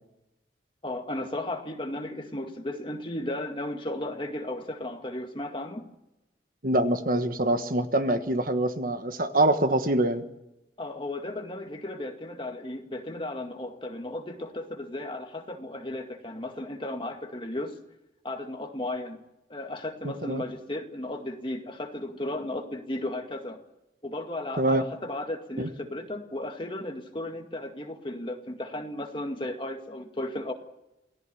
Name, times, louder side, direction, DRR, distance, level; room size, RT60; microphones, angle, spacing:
voice 1, 0.8-5.9 10.8-17.8 18.2-19.2 19.5-23.6 24.0-30.5, left 1 dB, 25° left, 4 dB, 2.0 m, -35 dB
voice 2, 6.6-10.2 20.0-20.4 24.6-24.8 25.6-25.7, right 1 dB, 50° right, 8 dB, 1.4 m, -25 dB
28.0 x 18.0 x 7.1 m, 0.92 s
head